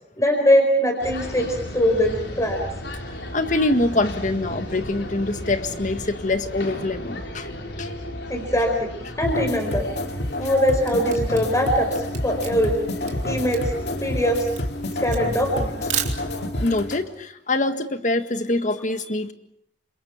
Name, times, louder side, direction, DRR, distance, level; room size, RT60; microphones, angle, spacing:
voice 1, 0.2-2.6 7.4-7.5 8.3-8.9 9.2-9.9 10.4-12.8 13.2-13.7 14.0-14.5 15.0-15.9, equal, 20° left, 3 dB, 4.8 m, -22 dB
sound 1, 1.0-16.5, left 1 dB, 85° left, 4.7 m, -36 dB
voice 2, 3.3-7.5 7.8-7.9 16.6-19.3, left 2 dB, 45° left, 8 dB, 1.9 m, -24 dB
sound 2, 9.2-17.0, left 1 dB, 70° left, 2.5 m, -29 dB
Camera, 10.4-16.7, right 9 dB, 45° right, 3.1 m, -34 dB
29.5 x 26.5 x 5.9 m, 0.72 s
head